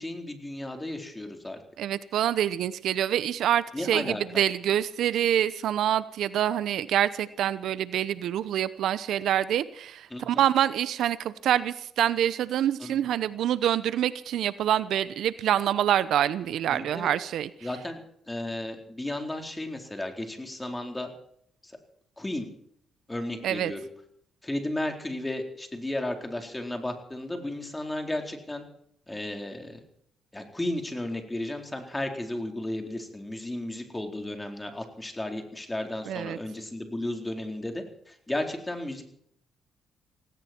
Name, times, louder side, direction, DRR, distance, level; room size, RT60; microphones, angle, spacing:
voice 1, 0.0-1.6 3.7-4.2 10.1-10.4 12.8-12.9 16.7-17.1 17.6-18.0 18.3-21.1 21.6-21.7 22.2-22.5 23.1-23.9 24.4-28.6 29.1-29.8 30.3-39.0, left 1 dB, 15° left, 4 dB, 4.1 m, -34 dB
voice 2, 1.8-17.5 23.4-23.7 36.1-36.4, right 11 dB, 75° right, 16 dB, 0.8 m, -26 dB
18.0 x 17.5 x 4.5 m, 0.66 s
cardioid pair, 90°, 0 cm